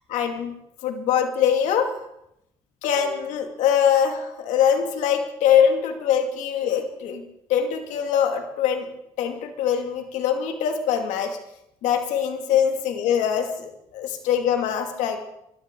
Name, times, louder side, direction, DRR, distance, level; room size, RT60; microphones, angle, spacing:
voice 1, 0.1-0.5 0.8-1.9 2.8-7.2 7.5-8.9 9.2-11.4 11.8-15.2, left 8 dB, 80° left, 4 dB, 2.4 m, -23 dB
23.0 x 13.0 x 3.9 m, 0.80 s
supercardioid pair, 65°, 12 cm